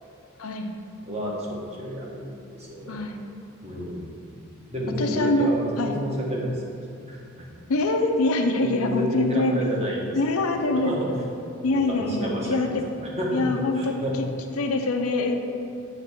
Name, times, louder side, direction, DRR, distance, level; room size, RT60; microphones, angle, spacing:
voice 1, 0.4-0.8 2.9-3.2 5.0-6.0 7.7-9.6 10.1-11.0 11.6-12.9 13.3-14.3 14.6-15.4, left 2 dB, 80° left, 4 dB, 0.6 m, -24 dB
voice 2, 1.0-3.0 3.6-4.3 4.7-6.6 7.1-7.5 8.6-11.1 11.7-13.4 13.7-14.1, right 1 dB, 30° right, -3 dB, 1.2 m, -31 dB
7.8 x 3.3 x 6.1 m, 2.5 s
head